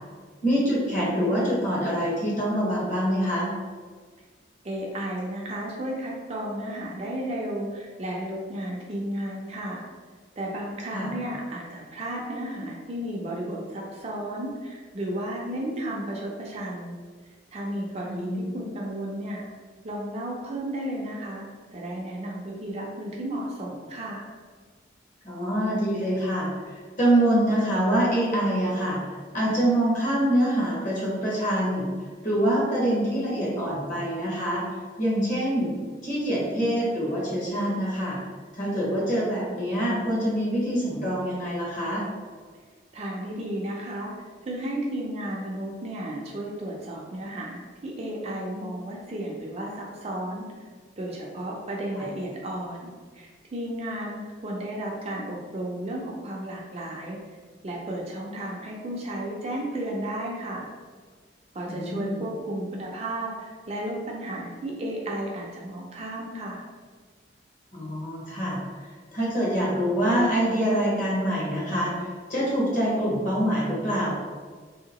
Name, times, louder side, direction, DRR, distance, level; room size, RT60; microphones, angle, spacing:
voice 1, 0.4-3.5 10.9-11.1 18.0-18.4 25.2-29.0 29.3-31.9 32.2-34.6 35.0-35.7 36.0-38.2 38.5-42.1 52.0-52.1 61.7-62.2 67.7-68.6 69.1-74.1, equal, 45° left, -6 dB, 1.0 m, -25 dB
voice 2, 4.6-9.8 10.4-17.0 17.5-19.4 19.8-24.3 42.9-44.1 44.4-50.5 51.0-52.9 53.1-57.2 57.6-60.7 61.5-66.6, right 1 dB, 35° right, -2 dB, 0.4 m, -33 dB
2.9 x 2.8 x 2.9 m, 1.5 s
head